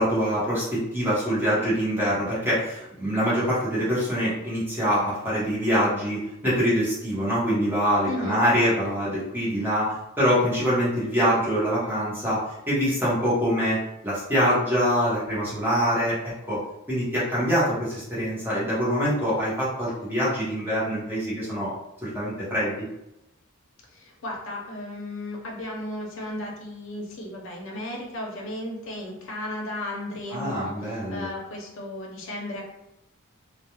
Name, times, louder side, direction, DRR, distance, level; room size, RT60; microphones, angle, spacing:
voice 1, 0.0-16.6 16.9-21.7 22.0-22.9 30.3-31.3, equal, 10° right, -9 dB, 1.0 m, -24 dB
voice 2, 8.1-8.4 23.9-32.6, left 1 dB, 65° left, -1 dB, 0.7 m, -35 dB
2.3 x 2.3 x 2.9 m, 0.86 s
head